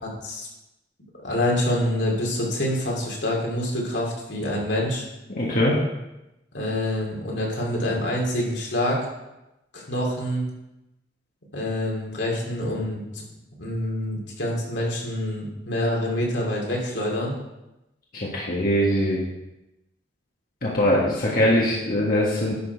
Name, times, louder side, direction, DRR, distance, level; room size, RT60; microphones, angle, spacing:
voice 1, 0.0-0.5 1.2-5.0 6.5-9.1 9.7-10.5 11.5-13.2 13.6-17.3, left 1 dB, 75° left, -2 dB, 2.7 m, -26 dB
voice 2, 5.4-5.8 18.1-19.2 20.6-22.5, left 1 dB, 55° left, -5 dB, 1.8 m, -22 dB
11.0 x 6.3 x 4.7 m, 0.94 s
head